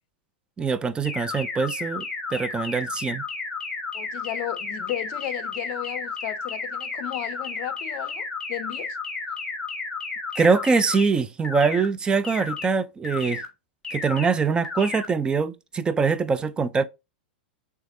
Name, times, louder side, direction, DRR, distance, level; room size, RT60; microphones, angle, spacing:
voice 1, 0.6-3.2 10.4-13.4 13.9-16.8, right 5 dB, 15° right, 0.3 m, -23 dB
sound 1, 1.0-11.1 11.4-11.9 12.2-12.7 13.0-13.5 13.8-14.3 14.6-15.1, left 4 dB, 10° left, 1.4 m, -32 dB
voice 2, 3.9-9.0, left 13 dB, 50° left, 0.5 m, -34 dB
3.4 x 3.2 x 2.5 m
hypercardioid pair, 110°, 6 cm